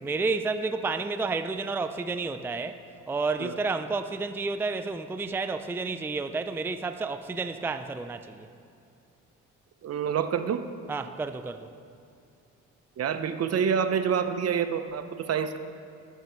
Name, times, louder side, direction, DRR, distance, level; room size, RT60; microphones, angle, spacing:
voice 1, 0.0-2.8 3.1-8.5 10.9-11.7, right 3 dB, 10° right, 9 dB, 0.4 m, -30 dB
voice 2, 9.8-10.6 13.0-15.6, right 7 dB, 55° right, 10 dB, 0.7 m, -27 dB
20.0 x 8.4 x 3.1 m, 2.5 s
cardioid pair, 90°, 30 cm